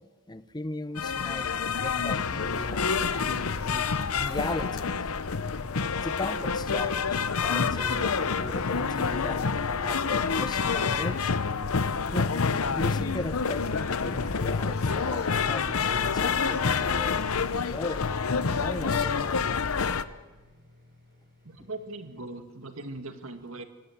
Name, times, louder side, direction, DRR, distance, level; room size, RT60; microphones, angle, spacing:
voice 1, 0.0-1.5 1.8-5.1 6.0-11.4 12.1-12.3 12.7-18.1 18.3-19.6, left 2 dB, 20° left, 13 dB, 0.8 m, -38 dB
sound 1, 0.9-20.0, left 5 dB, 90° left, 0.8 m, -28 dB
sound 2, 2.5-22.2, left 1 dB, 55° right, 6.3 m, -57 dB
sound 3, 13.2-19.1, right 1 dB, 30° right, 6.2 m, -56 dB
voice 2, 21.4-23.6, right 2 dB, 80° right, 7 dB, 2.0 m, -40 dB
25.0 x 18.0 x 7.3 m, 1.3 s
head